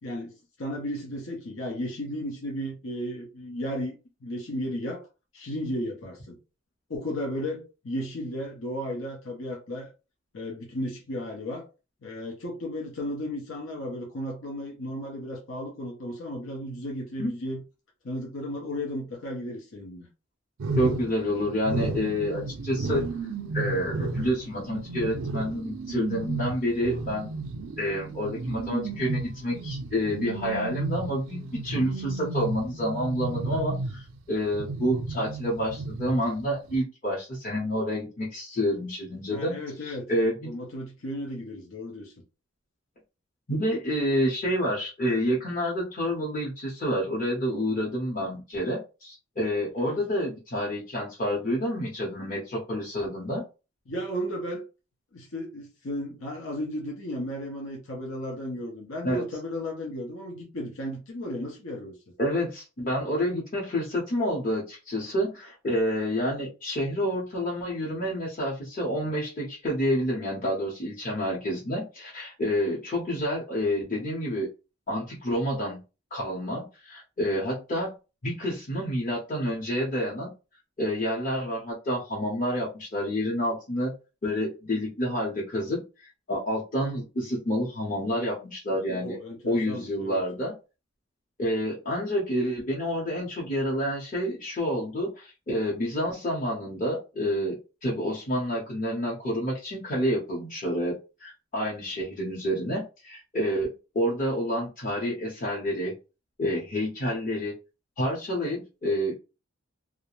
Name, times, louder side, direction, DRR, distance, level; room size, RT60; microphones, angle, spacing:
voice 1, 0.0-3.9 4.2-5.0 5.3-6.4 6.9-9.9 10.3-11.7 12.0-17.6 18.0-20.1 39.3-40.1 40.4-42.1 49.8-50.0 53.9-54.6 55.1-62.0 88.9-90.2, equal, 80° left, 0.7 m, -34 dB
sound 1, 20.6-34.2 34.5-36.4 36.7-36.8, right 3 dB, 70° right, 0.4 m, -33 dB
voice 2, 20.8-23.0 23.5-27.3 27.8-40.5 43.5-53.4 59.0-59.2 62.2-74.5 74.9-75.8 76.1-77.9 78.2-80.3 80.8-83.9 84.2-85.8 86.3-89.2 89.4-90.5 91.4-106.0 106.4-107.5 108.0-109.1, equal, 40° left, 0.8 m, -28 dB
2.4 x 2.1 x 2.9 m
head